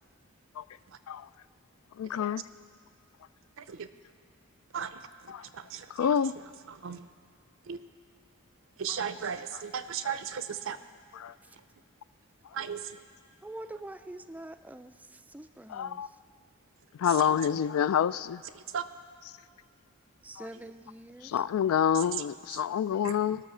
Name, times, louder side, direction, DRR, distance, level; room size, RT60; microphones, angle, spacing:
voice 1, 2.0-2.4 5.3-5.4 6.0-6.3 11.2-11.3 15.7-16.1 17.0-18.4 20.4-20.5 21.2-23.4, left 8 dB, 80° left, 18 dB, 0.3 m, -27 dB
voice 2, 3.6-3.9 4.7-6.2 6.7-7.1 7.6-7.8 8.8-10.8 12.5-13.0 17.0-17.5 18.4-18.8 20.5-20.6 21.9-22.6 23.0-23.2, right 7 dB, 65° right, 12 dB, 0.6 m, -37 dB
voice 3, 13.4-16.1 20.2-21.4, right 1 dB, 10° right, 10 dB, 0.3 m, -45 dB
19.5 x 6.4 x 6.1 m, 2.1 s
head